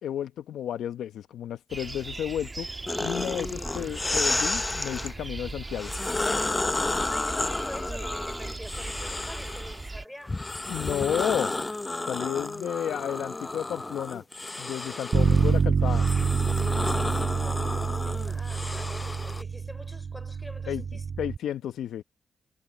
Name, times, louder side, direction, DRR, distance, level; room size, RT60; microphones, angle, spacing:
voice 1, 0.0-2.7 3.0-5.9 10.7-11.5 12.1-14.2 14.6-16.1 20.7-20.8 21.2-22.0, left 10 dB, 80° left, 0.9 m, -32 dB
sound 1, 1.7-10.0, right 3 dB, 25° right, 1.4 m, -38 dB
sound 2, 2.9-5.1 5.7-9.8 10.3-19.4, left 2 dB, 25° left, 0.6 m, -31 dB
voice 2, 7.1-10.4 17.4-21.1, left 1 dB, 5° left, 5.6 m, -45 dB
Bass guitar, 15.1-21.4, right 6 dB, 50° right, 0.4 m, -27 dB
cardioid pair, 65°, 0 cm